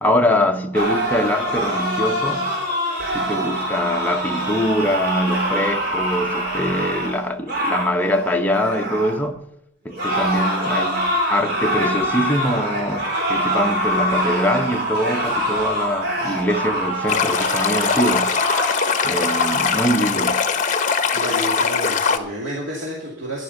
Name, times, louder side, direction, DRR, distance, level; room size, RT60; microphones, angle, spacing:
voice 1, 0.0-2.5 3.1-9.4 9.8-18.3 19.0-20.4, equal, 10° left, 0.8 m, -23 dB
sound 1, 0.7-9.2 9.9-19.9, equal, 55° right, 3.9 m, -24 dB
Stream, 17.1-22.2, left 5 dB, 40° left, 0.9 m, -21 dB
voice 2, 21.1-23.4, equal, 85° right, 2.5 m, -30 dB
13.0 x 10.5 x 5.4 m
head